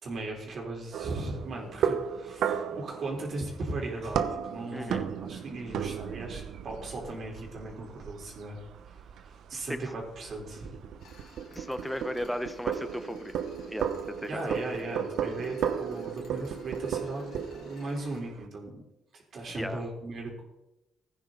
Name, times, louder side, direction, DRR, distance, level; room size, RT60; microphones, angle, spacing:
voice 1, 0.0-8.6 8.9-10.8 11.2-11.4 14.3-17.2 17.5-18.8 19.1-20.4, right 2 dB, 55° right, 0 dB, 4.0 m, -37 dB
sound 1, 0.9-18.5, right 8 dB, 75° right, 0.9 m, -35 dB
voice 2, 4.7-5.0 9.7-9.8 11.5-13.4 13.7-14.6 19.5-19.8, equal, ahead, 10 dB, 1.1 m, -35 dB
sound 2, 11.0-18.2, left 5 dB, 80° left, 4.1 m, -58 dB
16.0 x 9.5 x 4.0 m, 0.92 s
cardioid pair, 90°, 0 cm